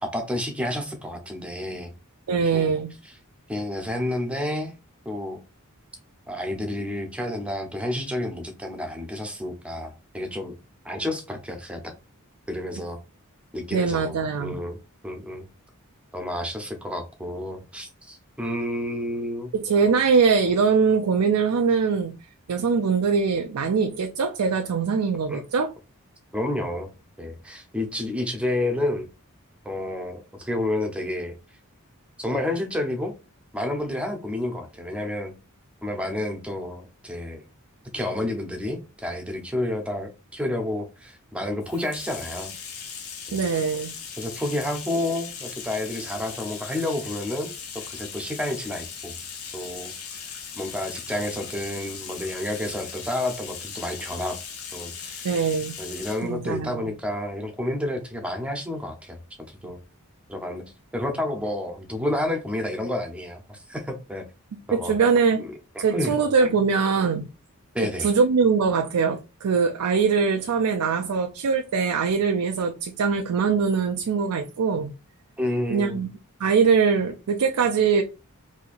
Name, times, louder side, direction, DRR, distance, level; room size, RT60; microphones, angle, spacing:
voice 1, 0.0-1.9 2.3-2.7 3.0-3.1 3.5-4.8 5.1-5.4 6.3-10.5 10.8-11.9 12.5-13.0 13.5-14.8 15.0-15.5 16.1-19.5 25.3-25.4 26.3-26.9 27.2-29.1 29.6-31.3 32.2-33.1 33.5-35.3 35.8-37.4 37.9-42.5 43.3-43.4 44.2-49.1 49.5-54.4 54.7-55.2 55.8-59.2 59.5-59.8 60.3-60.6 60.9-64.3 64.7-64.9 65.4-66.1 67.7-68.1 75.4-76.1, left 1 dB, 5° right, 0.7 m, -30 dB
voice 2, 2.3-2.9 13.7-14.6 19.5-22.2 22.5-25.7 43.3-43.9 55.2-55.8 56.2-56.9 64.7-65.4 65.8-67.3 67.8-74.9 75.7-76.1 76.4-78.0, right 5 dB, 85° right, 0.4 m, -22 dB
Bathtub (filling or washing), 41.6-56.3, left 6 dB, 75° left, 0.9 m, -38 dB
4.2 x 2.7 x 2.4 m
head